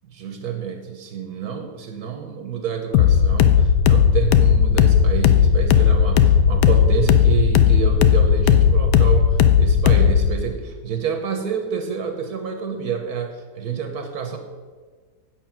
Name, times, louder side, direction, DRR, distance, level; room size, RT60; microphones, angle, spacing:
voice 1, 0.1-14.4, right 6 dB, 70° right, 5 dB, 1.3 m, -28 dB
sound 1, 2.9-10.3, left 8 dB, 80° left, 1.2 m, -15 dB
9.0 x 6.7 x 5.9 m, 1.5 s
omnidirectional pair, 1.8 m